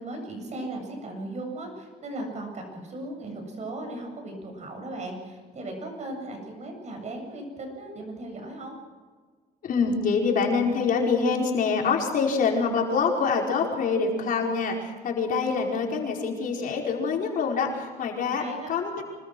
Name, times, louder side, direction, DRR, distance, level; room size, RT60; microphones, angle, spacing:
voice 1, 0.0-8.8 18.4-18.7, right 2 dB, 45° right, 3 dB, 8.0 m, -37 dB
voice 2, 9.6-19.0, left 5 dB, 55° left, 0 dB, 5.0 m, -25 dB
26.0 x 20.5 x 6.3 m, 1.5 s
cardioid pair, 110°, 17 cm